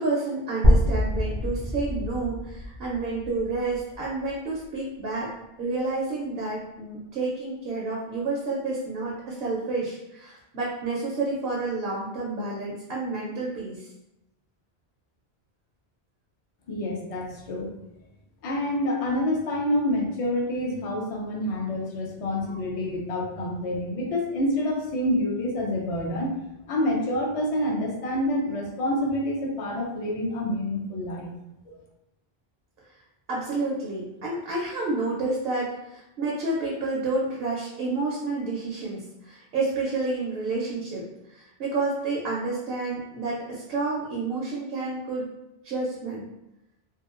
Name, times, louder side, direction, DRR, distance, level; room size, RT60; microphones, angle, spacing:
voice 1, 0.0-5.3 5.6-13.9 33.3-45.3 45.6-46.3, right 3 dB, 70° right, -4 dB, 0.8 m, -30 dB
sound 1, 0.6-4.6, left 1 dB, 50° right, 0.3 m, -25 dB
voice 2, 16.7-17.7 18.4-26.3 26.7-31.3, left 1 dB, 50° left, -1 dB, 0.4 m, -27 dB
2.7 x 2.1 x 2.4 m, 0.89 s
omnidirectional pair, 1.1 m